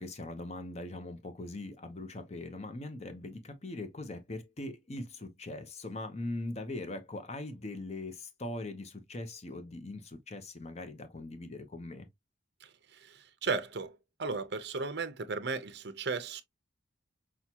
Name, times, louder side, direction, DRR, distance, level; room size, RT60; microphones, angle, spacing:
voice 1, 0.0-12.1, left 2 dB, 35° left, 0.7 m, -41 dB
voice 2, 12.6-16.4, right 4 dB, 55° right, 0.7 m, -36 dB
5.9 x 2.3 x 2.8 m
head